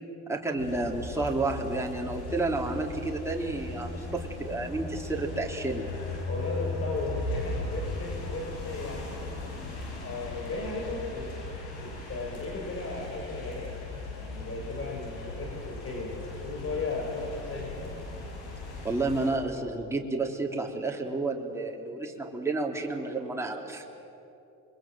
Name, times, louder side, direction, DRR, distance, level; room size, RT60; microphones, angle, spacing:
voice 1, 0.3-5.9 18.8-23.8, right 2 dB, 10° right, 0 dB, 3.3 m, -31 dB
sound 1, 0.6-19.3, left 2 dB, 90° left, 6.2 m, -38 dB
voice 2, 6.2-9.4 10.0-11.4 11.8-13.8 14.2-18.1, left 3 dB, 40° left, -2 dB, 5.2 m, -36 dB
26.0 x 22.5 x 7.7 m, 2.9 s
supercardioid pair, 85°, 35 cm